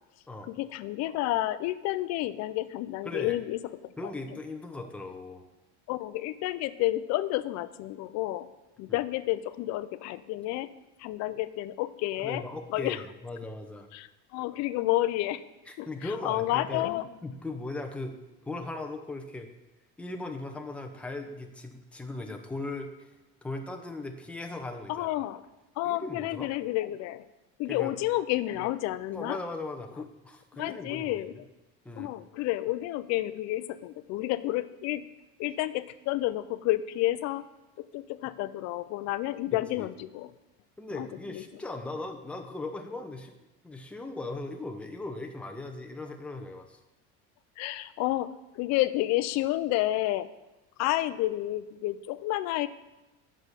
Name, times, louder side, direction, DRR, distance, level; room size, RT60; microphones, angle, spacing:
voice 1, 0.4-3.9 5.9-8.5 8.8-10.7 11.0-12.4 12.7-13.0 13.9-15.4 15.8-17.1 24.9-25.4 25.8-27.3 27.6-29.4 30.6-31.3 32.0-35.0 35.4-37.5 37.8-40.3 40.9-41.4 47.6-48.3 48.5-50.3 50.8-52.7, left 16 dB, 55° left, 15 dB, 0.5 m, -30 dB
voice 2, 3.0-3.4 4.0-5.4 8.9-9.0 12.2-13.9 15.7-16.8 17.2-18.1 18.4-19.5 20.0-23.1 23.4-25.1 25.8-26.5 27.7-27.9 29.1-31.4 31.8-32.1 39.8-39.9 40.8-43.3 43.6-46.8, left 2 dB, 5° left, 4 dB, 0.6 m, -38 dB
7.7 x 6.2 x 6.7 m, 1.0 s
cardioid pair, 160°, 33 cm